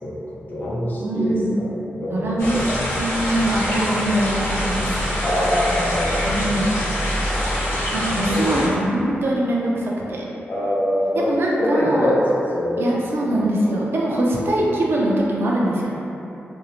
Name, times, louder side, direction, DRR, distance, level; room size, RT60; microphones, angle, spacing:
voice 1, 0.0-2.7 5.2-6.3 8.3-8.6 10.5-11.3 11.6-13.3, left 1 dB, 45° left, -7 dB, 0.6 m, -24 dB
voice 2, 1.0-1.6 2.1-2.7 3.0-4.9 6.3-6.7 7.9-10.2 11.1-12.1 12.8-15.9, right 1 dB, 65° right, -4 dB, 0.4 m, -22 dB
sound 1, 2.4-8.7, equal, 85° left, 0.6 m, -24 dB
2.6 x 2.0 x 2.8 m, 2.9 s
wide cardioid pair, 100°, 4 cm